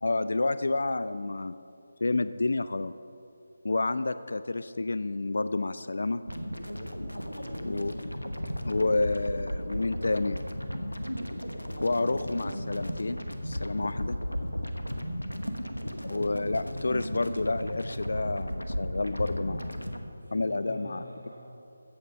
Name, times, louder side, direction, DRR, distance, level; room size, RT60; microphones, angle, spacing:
voice 1, 0.0-1.5 2.0-2.9 3.6-6.2 7.7-8.2 8.6-10.4 11.8-14.2 16.0-19.9 20.3-21.0, left 2 dB, 60° left, 13 dB, 0.4 m, -29 dB
sound 1, 6.3-20.0, equal, 85° left, 1.1 m, -35 dB
voice 2, 7.2-8.1 14.8-15.2 20.1-21.4, equal, 85° right, -3 dB, 3.2 m, -46 dB
14.5 x 8.6 x 5.3 m, 2.6 s
figure-of-eight pair, 155°, 0 cm